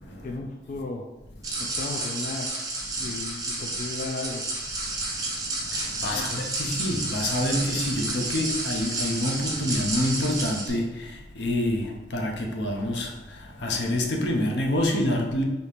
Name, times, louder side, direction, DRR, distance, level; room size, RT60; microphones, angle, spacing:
voice 1, 0.2-1.0 1.6-2.5 3.0-4.4 6.1-6.4, left 3 dB, 45° left, 1 dB, 0.3 m, -35 dB
sound 1, 1.4-10.7, right 2 dB, 20° right, 0.8 m, -31 dB
voice 2, 4.8-5.2 5.5-15.4, left 1 dB, 85° left, 1 dB, 0.7 m, -27 dB
4.3 x 2.8 x 3.3 m, 1.1 s
head